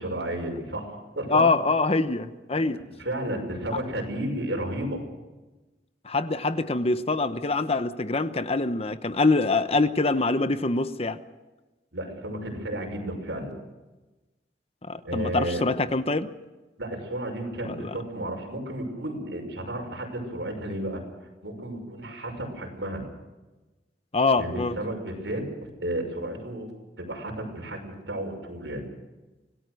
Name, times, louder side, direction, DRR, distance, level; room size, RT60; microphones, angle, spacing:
voice 1, 0.0-1.4 2.5-2.6 3.0-5.0 11.9-13.5 15.0-15.6 16.8-21.0 21.4-23.0 24.4-26.7 27.0-28.8, right 1 dB, 90° right, 2 dB, 6.1 m, -32 dB
voice 2, 1.3-2.8 6.0-11.2 14.8-16.3 17.6-17.9 24.1-24.7, left 3 dB, 35° left, 12 dB, 0.9 m, -24 dB
25.5 x 18.0 x 6.5 m, 1.1 s
head